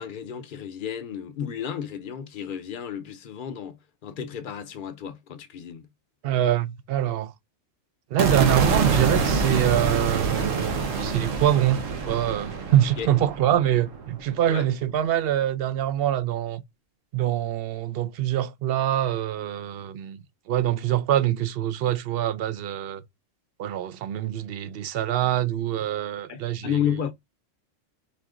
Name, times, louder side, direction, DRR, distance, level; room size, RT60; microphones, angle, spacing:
voice 1, 0.0-5.9 13.0-13.1 14.5-14.7 26.3-27.1, left 9 dB, 50° left, 0.7 m, -32 dB
voice 2, 6.2-7.3 8.1-16.6 17.1-20.2 20.5-23.0 23.6-26.8, right 11 dB, 65° right, 0.6 m, -25 dB
sound 1, 8.2-14.4, right 5 dB, 80° right, 1.2 m, -26 dB
4.1 x 2.9 x 3.6 m
omnidirectional pair, 1.3 m